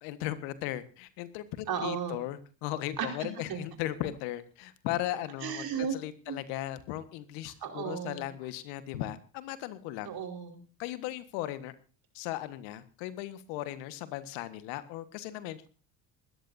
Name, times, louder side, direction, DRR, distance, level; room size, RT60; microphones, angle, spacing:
voice 1, 0.0-10.1 10.8-11.7 12.1-15.6, left 14 dB, 75° left, 12 dB, 1.6 m, -37 dB
voice 2, 1.7-2.2 3.0-3.1 3.5-3.6 5.4-6.0 6.3-6.4 7.6-8.3 10.0-10.6, right 7 dB, 55° right, 3 dB, 4.9 m, -34 dB
20.0 x 15.0 x 2.7 m, 0.35 s
hypercardioid pair, 75°, 44 cm